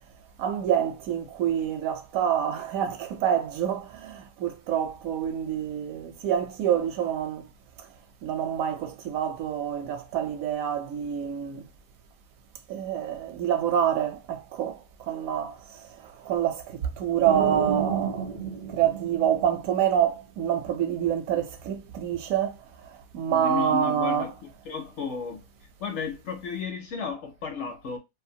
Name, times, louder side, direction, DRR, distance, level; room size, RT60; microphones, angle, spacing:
voice 1, 0.4-7.5 8.2-11.7 12.7-14.8 15.1-15.5 16.3-16.6 17.0-18.3 18.7-22.5 23.1-24.3, right 9 dB, 70° right, 1.0 m, -27 dB
sound 1, 17.2-20.0, right 6 dB, 45° right, 0.4 m, -31 dB
voice 2, 23.3-24.3 24.6-25.4 25.8-28.0, left 5 dB, 65° left, 0.7 m, -33 dB
2.6 x 2.4 x 2.6 m
omnidirectional pair, 1.5 m